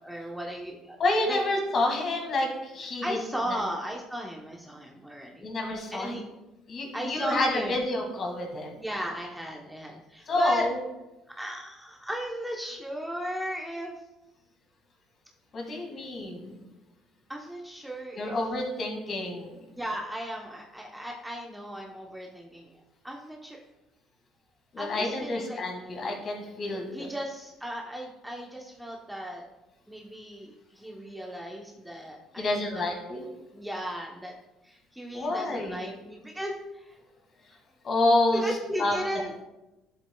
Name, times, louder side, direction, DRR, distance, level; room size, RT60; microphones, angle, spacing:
voice 1, 0.0-1.0 1.3-1.4 3.0-5.5 5.9-6.2 6.9-7.8 8.8-10.7 11.4-14.0 15.6-15.8 17.3-18.4 19.7-23.6 24.8-25.6 25.9-26.1 26.9-29.5 29.9-32.8 33.5-34.3 34.6-36.9 38.3-39.4, equal, 5° right, -1 dB, 0.9 m, -36 dB
voice 2, 1.0-3.2 3.5-3.6 5.4-6.2 6.7-8.8 10.3-10.8 15.5-16.6 18.1-19.6 24.7-27.1 32.4-33.3 35.1-35.9 37.8-38.4 38.8-38.9, left 2 dB, 40° left, 2 dB, 1.9 m, -28 dB
11.0 x 7.6 x 2.3 m, 1.0 s
cardioid pair, 105°, 0 cm